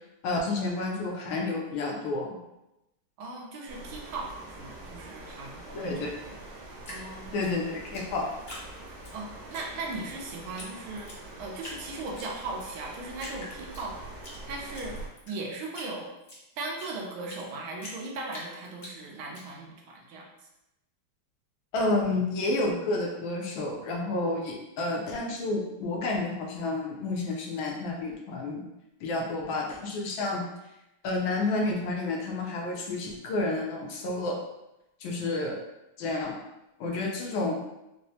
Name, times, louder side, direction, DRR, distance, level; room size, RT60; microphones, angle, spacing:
voice 1, 0.2-2.4 5.7-6.1 7.3-8.3 21.7-28.6 29.0-30.5 31.0-34.4 35.0-35.6 36.0-36.4 36.8-37.5, left 2 dB, 80° left, 0 dB, 1.4 m, -30 dB
voice 2, 3.2-6.4 6.9-7.3 9.1-11.1 11.4-14.0 14.5-15.0 15.3-16.1 16.6-20.5, right 3 dB, 85° right, -1 dB, 1.5 m, -38 dB
sound 1, 3.7-15.1, right 2 dB, 65° right, 1.1 m, -44 dB
Drip, 6.8-9.1 9.5-10.2 10.6-10.7 11.0-11.8 12.2-12.8 13.2-14.4 14.7-17.5 17.8-19.4, left 1 dB, 65° left, 0.6 m, -44 dB
4.3 x 2.0 x 2.7 m, 0.91 s
omnidirectional pair, 2.2 m